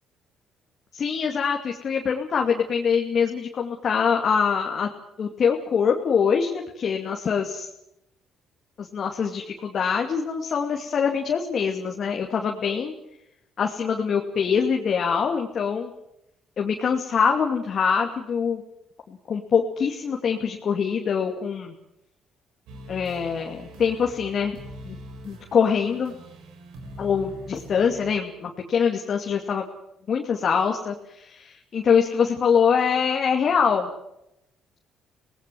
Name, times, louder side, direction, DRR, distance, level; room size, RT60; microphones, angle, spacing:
voice 1, 0.9-4.9 5.2-7.7 8.8-12.9 13.6-15.9 16.6-18.6 19.1-21.7 22.9-24.6 24.8-25.0 25.2-26.1 27.0-29.6 30.1-33.9, left 6 dB, 55° left, 1 dB, 2.5 m, -24 dB
sound 1, 22.7-28.2, equal, 80° right, 4.6 m, -43 dB
26.5 x 18.5 x 7.8 m, 0.83 s
supercardioid pair, 65°, 0 cm